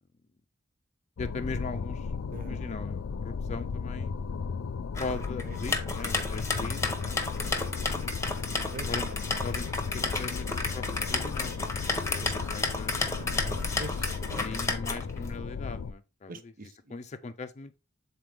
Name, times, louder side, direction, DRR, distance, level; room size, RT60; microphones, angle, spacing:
sound 1, 1.2-15.9, left 5 dB, 90° left, 0.4 m, -35 dB
voice 1, 1.2-2.1 2.4-4.1 5.0-7.9 8.9-9.1 9.4-9.7 9.9-10.8 11.1-13.1 14.4-17.8, left 3 dB, 35° left, 0.5 m, -40 dB
voice 2, 2.3-2.7 5.4-5.6 8.7-8.9 12.2-12.3 13.1-14.4 16.3-16.7, right 2 dB, 45° right, 0.6 m, -43 dB
sound 2, 4.9-15.3, left 3 dB, 15° left, 0.9 m, -32 dB
7.6 x 4.0 x 3.5 m
head